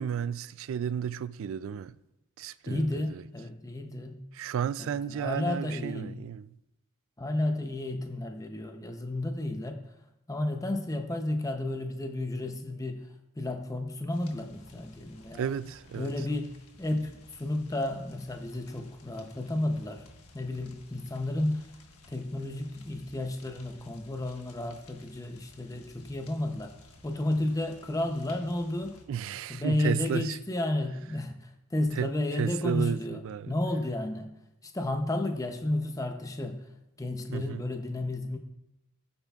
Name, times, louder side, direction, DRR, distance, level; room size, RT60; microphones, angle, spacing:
voice 1, 0.0-2.0 2.4-3.2 4.3-6.5 15.3-16.1 29.1-30.4 32.0-33.5 37.3-37.6, right 8 dB, 60° right, 0.3 m, -33 dB
voice 2, 2.7-4.2 4.8-6.2 7.2-9.9 10.3-13.1 13.4-15.5 16.0-20.0 20.3-21.8 22.1-26.7 27.0-29.0 29.5-36.7 37.0-38.4, left 1 dB, 15° left, 0.6 m, -32 dB
sound 1, 14.1-29.0, left 2 dB, 80° left, 1.3 m, -55 dB
15.5 x 9.1 x 2.4 m
head